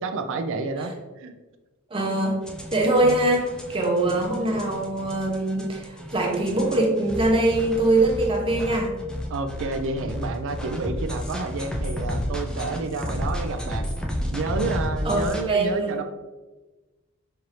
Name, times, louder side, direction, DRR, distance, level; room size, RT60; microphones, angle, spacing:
voice 1, 0.0-1.3 3.0-3.2 3.8-4.2 9.3-13.9 14.3-16.0, right 3 dB, 60° right, 7 dB, 0.4 m, -30 dB
voice 2, 1.9-2.4 2.7-8.9 15.0-16.0, right 2 dB, 25° right, 0 dB, 0.7 m, -23 dB
sound 1, 2.5-15.4, equal, 5° left, 0.3 m, -32 dB
4.4 x 2.6 x 3.2 m, 1.2 s
head